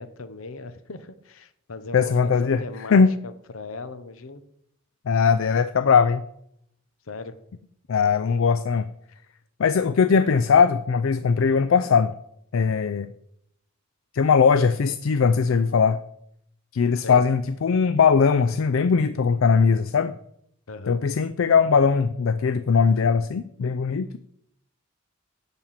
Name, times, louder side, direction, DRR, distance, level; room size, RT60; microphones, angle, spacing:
voice 1, 0.0-4.4 7.0-7.4 16.9-17.2 20.7-21.0, left 3 dB, 90° left, 12 dB, 0.8 m, -38 dB
voice 2, 1.9-2.6 2.9-3.1 5.1-6.2 7.9-8.9 9.6-12.1 12.5-13.1 14.1-16.0 16.7-20.1 20.9-24.2, left 5 dB, 75° left, 12 dB, 0.4 m, -20 dB
10.5 x 4.3 x 7.4 m, 0.73 s
head